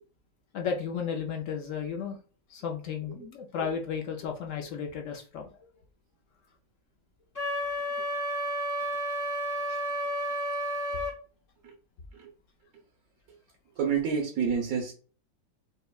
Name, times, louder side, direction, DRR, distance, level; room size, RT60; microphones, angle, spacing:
voice 1, 0.5-2.2 2.5-5.5 9.7-9.8, left 6 dB, 75° left, 3 dB, 0.7 m, -34 dB
Wind instrument woodwind instrument, 7.4-11.2, equal, 30° left, 0.8 m, -31 dB
voice 2, 13.8-14.9, right 6 dB, 60° right, 1 dB, 0.9 m, -28 dB
5.3 x 2.1 x 2.3 m, 0.38 s
omnidirectional pair, 1.9 m